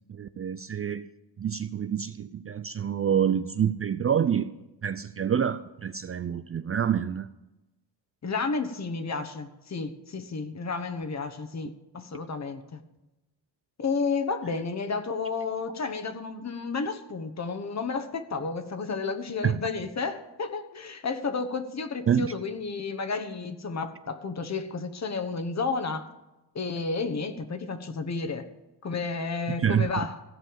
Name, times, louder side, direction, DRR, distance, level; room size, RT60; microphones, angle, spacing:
voice 1, 0.1-1.1 1.4-4.5 4.8-7.3 19.4-19.6 22.1-22.3 29.6-29.9, right 8 dB, 35° right, 12 dB, 0.4 m, -27 dB
voice 2, 8.2-12.8 13.8-26.1 26.5-28.5 28.8-30.2, left 4 dB, 40° left, 7 dB, 1.3 m, -32 dB
16.0 x 5.5 x 8.9 m, 0.99 s
cardioid pair, 100°, 42 cm